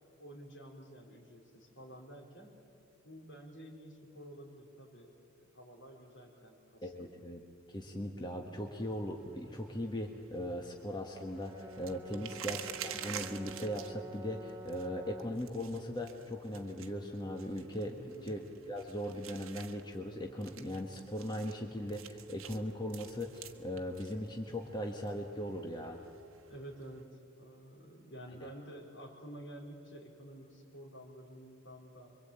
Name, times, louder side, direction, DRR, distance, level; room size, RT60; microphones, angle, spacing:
voice 1, 0.2-2.6 3.0-7.1 17.9-18.4 26.5-32.2, right 1 dB, 60° left, 0 dB, 4.7 m, -51 dB
voice 2, 6.8-7.4 7.7-18.0 18.2-18.4 18.7-26.0 28.4-28.5, equal, 20° left, 2 dB, 1.4 m, -39 dB
sound 1, 8.6-27.0, right 9 dB, 65° right, 1.3 m, -50 dB
Brass instrument, 11.1-15.4, right 1 dB, 15° right, 0.9 m, -49 dB
26.5 x 23.5 x 8.8 m, 2.6 s
head